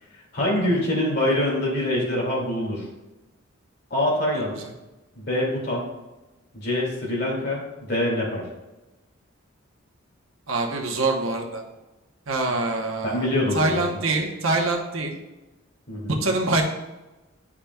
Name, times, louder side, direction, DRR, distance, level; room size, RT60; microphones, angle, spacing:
voice 1, 0.3-2.9 3.9-4.6 5.2-5.9 6.5-8.4 13.0-13.8 15.9-16.2, left 1 dB, 55° left, -3 dB, 2.3 m, -24 dB
voice 2, 10.5-11.6 12.3-13.3 13.5-15.2 16.2-16.6, right 2 dB, 85° right, 2 dB, 1.0 m, -25 dB
10.0 x 4.9 x 2.3 m, 1.1 s
head